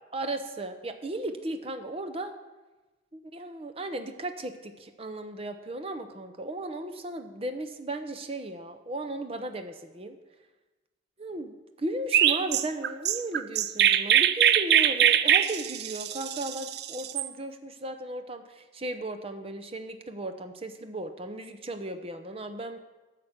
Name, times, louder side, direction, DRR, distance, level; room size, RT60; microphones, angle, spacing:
voice 1, 0.1-2.3 3.1-10.2 11.2-22.8, right 2 dB, 30° right, 8 dB, 0.8 m, -36 dB
Chirp tweet, 12.1-17.3, right 10 dB, 55° right, 0.4 m, -22 dB
10.5 x 6.0 x 8.0 m, 1.2 s
head